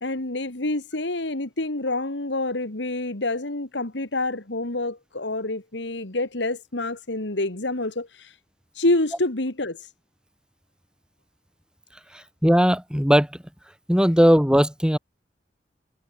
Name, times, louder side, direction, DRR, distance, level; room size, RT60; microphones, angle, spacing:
voice 1, 0.0-8.3 8.8-9.8, left 2 dB, 80° left, 2.3 m, -27 dB
voice 2, 12.1-13.4 13.9-15.0, equal, 5° right, 3.3 m, -19 dB
head